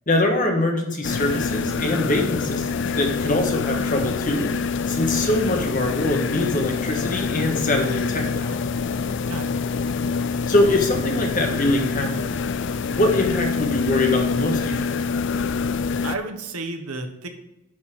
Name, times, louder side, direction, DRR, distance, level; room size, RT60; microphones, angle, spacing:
voice 1, 0.1-4.5 4.9-8.5 10.3-12.3 13.0-14.9, left 2 dB, 40° left, 2 dB, 1.5 m, -23 dB
sound 1, 1.0-16.2, left 5 dB, 55° left, 0.4 m, -26 dB
voice 2, 16.0-17.3, right 3 dB, 90° right, 5 dB, 1.3 m, -32 dB
10.5 x 4.3 x 6.2 m, 0.94 s
head